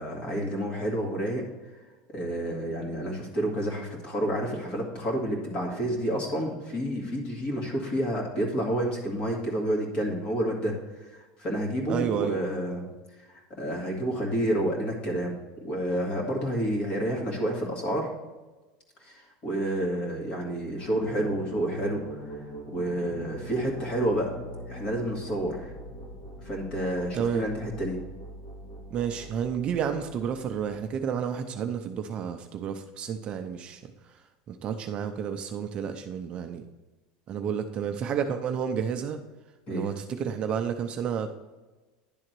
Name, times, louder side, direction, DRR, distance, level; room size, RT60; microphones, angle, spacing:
voice 1, 0.0-1.4 2.1-10.7 11.0-12.9 13.3-15.3 15.6-18.1 19.0-22.4 22.7-24.3 24.7-25.7 26.4-28.0 39.7-39.9, right 1 dB, 30° left, 0 dB, 2.0 m, -29 dB
voice 2, 11.9-12.4 27.1-27.5 28.9-36.6 37.3-39.2 39.7-41.3, right 7 dB, 30° right, 6 dB, 0.5 m, -31 dB
sound 1, 20.6-31.2, equal, 50° left, 2.0 m, -43 dB
10.5 x 3.8 x 4.5 m, 1.2 s
supercardioid pair, 160°, 4 cm